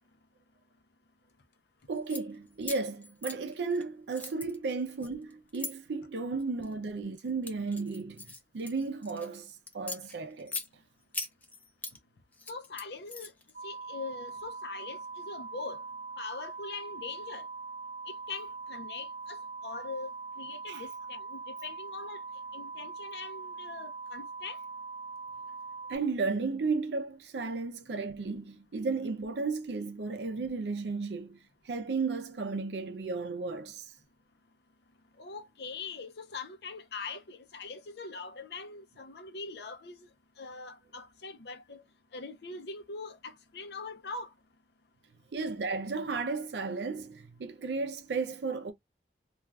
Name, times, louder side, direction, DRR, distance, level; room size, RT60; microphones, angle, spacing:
sound 1, 1.9-2.2 2.6-3.8 4.1-5.7 6.4-6.7 7.2-9.3 9.7-10.7 11.1-12.0 12.3-13.5, left 3 dB, 10° left, 0.4 m, -40 dB
voice 1, 1.9-10.6 20.7-20.8 25.9-31.4 31.6-33.9 45.3-48.7, right 4 dB, 75° right, 0.5 m, -34 dB
voice 2, 12.5-13.3 13.6-15.8 16.2-17.5 18.1-19.4 19.6-22.2 22.5-24.6 35.2-40.1 40.4-41.8 42.1-44.3, left 4 dB, 65° left, 0.6 m, -42 dB
sound 2, 13.5-26.0, right 4 dB, 40° right, 1.0 m, -42 dB
2.4 x 2.3 x 3.2 m
head